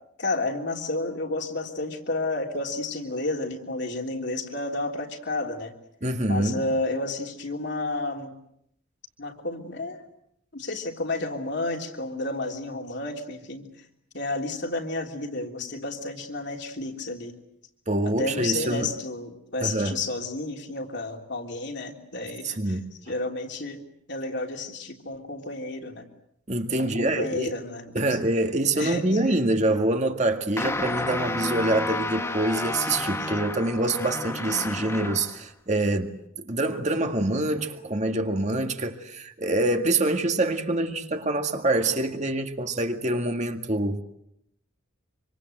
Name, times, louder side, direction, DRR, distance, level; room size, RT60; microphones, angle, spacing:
voice 1, 0.2-5.7 6.3-8.3 9.2-10.0 10.5-13.7 14.1-17.3 18.2-22.8 23.1-23.8 24.1-26.0 26.8-28.1 28.7-29.4, left 2 dB, 55° left, 3.3 m, -31 dB
voice 2, 6.0-6.6 17.9-18.9 19.6-20.0 22.4-22.8 26.5-27.5 27.9-36.2 36.4-44.0, right 2 dB, 35° right, 1.9 m, -25 dB
sound 1, 30.6-35.4, left 2 dB, 15° left, 1.2 m, -31 dB
26.0 x 25.5 x 7.9 m
head